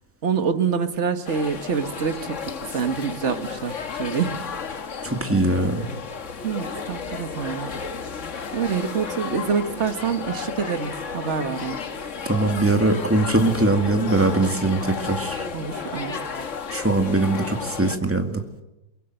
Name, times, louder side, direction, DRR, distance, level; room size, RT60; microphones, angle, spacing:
voice 1, 0.2-2.4 2.7-4.4 6.4-7.7 8.5-11.8 15.5-16.4, right 6 dB, 40° right, 9 dB, 1.5 m, -26 dB
sound 1, 1.3-18.0, left 5 dB, 45° left, 1.5 m, -33 dB
voice 2, 5.0-5.9 12.3-15.4 16.7-18.4, right 2 dB, 5° right, 4 dB, 2.0 m, -21 dB
23.0 x 23.0 x 7.8 m, 0.95 s
omnidirectional pair, 2.1 m